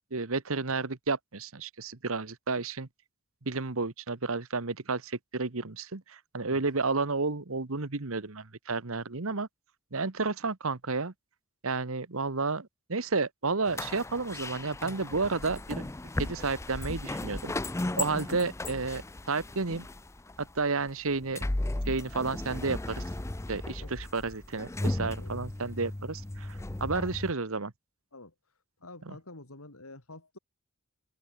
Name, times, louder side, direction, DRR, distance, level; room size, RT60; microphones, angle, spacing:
voice 1, 0.1-2.9 3.5-9.5 9.9-11.1 11.6-15.8 16.2-17.5 18.0-19.0 19.3-19.9 20.4-21.4 21.9-23.0 23.5-27.7 29.1-29.2, right 3 dB, 65° right, 1.3 m, -31 dB
sound 1, 13.7-27.3, left 2 dB, 10° left, 0.5 m, -36 dB
voice 2, 23.8-24.1 25.2-25.5 28.1-28.3 28.8-30.4, left 2 dB, 70° left, 3.3 m, -49 dB
open air
head